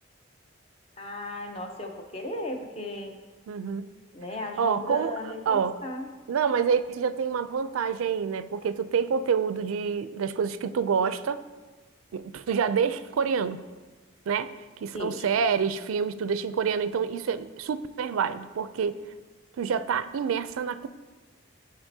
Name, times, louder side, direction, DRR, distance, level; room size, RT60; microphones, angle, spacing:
voice 1, 1.0-3.2 4.1-6.1 14.9-15.3, left 1 dB, 30° left, 3 dB, 0.7 m, -36 dB
voice 2, 3.5-3.9 4.6-5.1 5.5-5.8 6.3-11.4 12.1-13.6 14.3-14.5 14.8-19.0 19.6-20.9, right 6 dB, 85° right, 13 dB, 0.4 m, -27 dB
13.0 x 5.2 x 2.7 m, 1.3 s
head